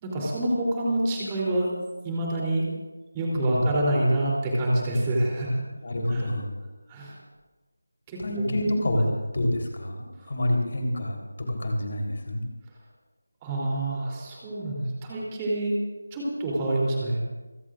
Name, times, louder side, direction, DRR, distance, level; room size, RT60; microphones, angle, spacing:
voice 1, 0.0-1.7 2.0-2.7 3.1-5.7 6.1-6.3 6.9-7.2 8.1-8.5 8.9-9.0 10.2-10.3 13.4-15.8 16.1-17.2, right 1 dB, 15° right, -4 dB, 3.4 m, -27 dB
voice 2, 3.3-3.7 5.8-6.5 8.2-11.2 11.5-12.4, left 1 dB, 45° left, 1 dB, 3.8 m, -27 dB
28.5 x 16.0 x 2.6 m, 1.2 s
figure-of-eight pair, 165°, 0 cm